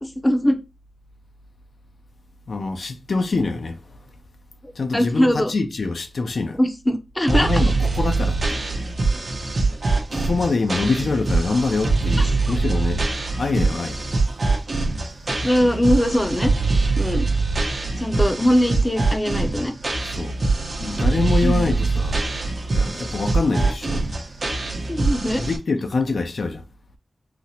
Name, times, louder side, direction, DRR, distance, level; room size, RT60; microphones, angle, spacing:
voice 1, 0.0-0.6 4.6-5.5 6.5-7.5 12.2-12.6 15.4-16.5 17.0-17.3 18.0-19.7 20.8-21.0 21.4-21.7 24.9-25.4, equal, 20° left, 0.5 m, -21 dB
voice 2, 2.5-3.8 4.8-6.6 7.3-8.4 10.1-13.0 13.4-14.0 20.0-20.4 20.8-22.2 22.7-24.0 25.4-26.6, left 3 dB, 75° left, 0.4 m, -24 dB
sound 1, 7.3-25.6, right 3 dB, 60° right, 0.8 m, -23 dB
4.0 x 2.1 x 2.6 m
wide cardioid pair, 70°, 0 cm